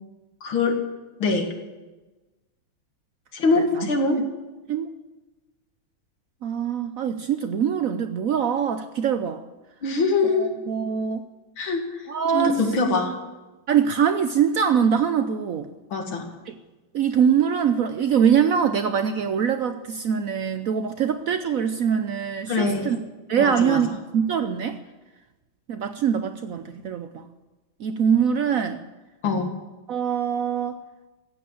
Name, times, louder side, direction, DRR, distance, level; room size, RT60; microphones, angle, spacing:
voice 1, 0.4-0.8 1.2-1.5 3.3-4.2 9.8-10.5 11.6-11.8 12.3-13.1 15.9-16.3 22.5-22.9 23.4-23.8 29.2-29.5, left 3 dB, 80° left, 3 dB, 2.7 m, -23 dB
voice 2, 3.6-3.9 4.7-4.9 6.4-9.4 10.2-11.2 12.1-12.6 13.7-15.7 16.5-16.6 16.9-23.0 23.3-24.8 25.7-27.3 27.8-28.8 29.9-30.8, right 7 dB, 70° right, 9 dB, 0.8 m, -23 dB
15.0 x 8.7 x 8.6 m, 1.2 s
omnidirectional pair, 2.2 m